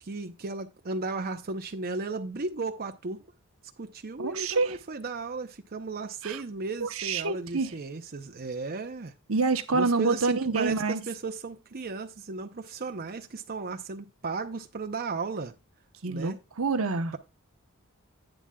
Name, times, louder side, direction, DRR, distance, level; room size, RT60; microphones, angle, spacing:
voice 1, 0.0-3.2 3.8-9.1 9.7-15.5 16.1-16.4, right 3 dB, 45° right, 0.8 m, -35 dB
voice 2, 4.2-4.7 6.2-6.4 6.8-7.7 9.3-11.0 16.0-17.1, right 4 dB, 75° right, 1.0 m, -27 dB
11.0 x 9.0 x 2.3 m
head